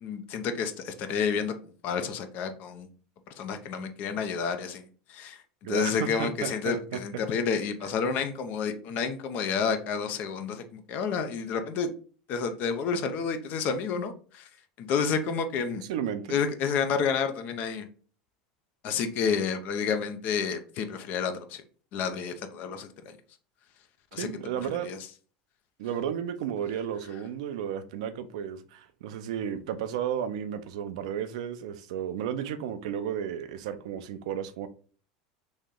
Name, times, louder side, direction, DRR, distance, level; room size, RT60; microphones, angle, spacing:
voice 1, 0.0-2.9 3.4-5.4 5.7-11.9 12.3-14.5 14.8-15.8 16.3-17.9 18.8-21.6 21.9-23.2 24.1-24.3 24.6-25.0, left 6 dB, 55° left, 0.6 m, -30 dB
voice 2, 5.6-7.0 15.9-16.4 24.2-24.9 25.8-34.7, right 9 dB, 75° right, 0.5 m, -33 dB
3.1 x 2.8 x 3.7 m
hypercardioid pair, 95°, 3 cm